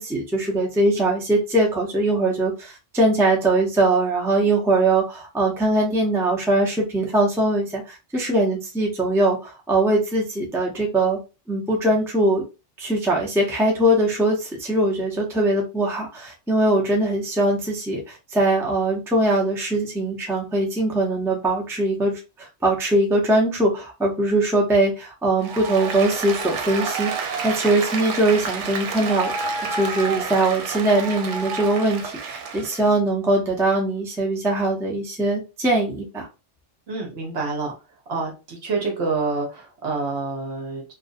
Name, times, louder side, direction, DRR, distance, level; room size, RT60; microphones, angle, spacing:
voice 1, 0.0-11.2 11.5-12.4 12.8-29.3 29.7-36.3, right 2 dB, 5° right, -1 dB, 0.4 m, -21 dB
Applause, 25.4-32.9, right 5 dB, 90° right, 0.9 m, -29 dB
voice 2, 36.9-37.7 38.1-40.8, right 3 dB, 65° right, 1 dB, 1.0 m, -27 dB
2.5 x 2.2 x 2.4 m, 0.29 s
omnidirectional pair, 1.2 m